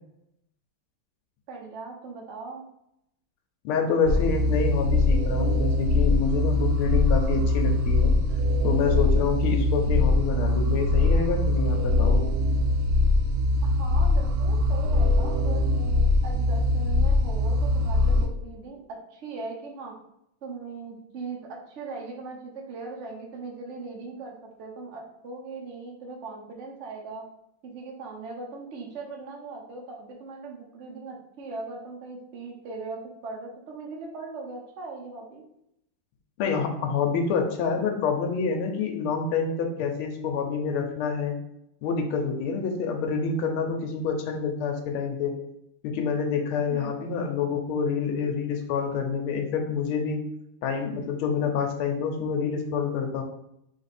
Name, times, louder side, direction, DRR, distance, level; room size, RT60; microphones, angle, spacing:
voice 1, 1.5-2.6 13.6-19.9 20.4-27.3 27.6-35.4 46.7-47.0, right 3 dB, 60° right, 0 dB, 0.7 m, -39 dB
voice 2, 3.6-8.1 8.6-12.2 36.4-41.4 41.8-45.4 45.8-50.2 50.6-53.2, left 5 dB, 80° left, 3 dB, 1.5 m, -27 dB
sound 1, 4.1-18.3, left 2 dB, 90° right, 1.5 m, -22 dB
3.5 x 3.4 x 4.1 m, 0.78 s
omnidirectional pair, 2.3 m